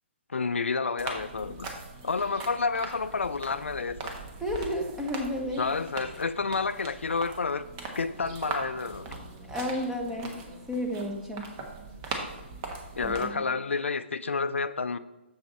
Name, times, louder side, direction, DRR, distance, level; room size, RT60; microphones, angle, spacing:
voice 1, 0.3-1.7 2.0-4.0 5.6-7.7 8.0-9.1 13.0-15.0, left 4 dB, 80° left, 0.4 m, -29 dB
sound 1, 1.0-13.2, right 3 dB, 30° right, 1.2 m, -40 dB
voice 2, 4.4-5.7 9.5-10.4 10.7-11.4 12.1-12.2 13.0-13.5, equal, 5° right, 1.1 m, -32 dB
7.1 x 6.3 x 4.1 m
figure-of-eight pair, 135°, 7 cm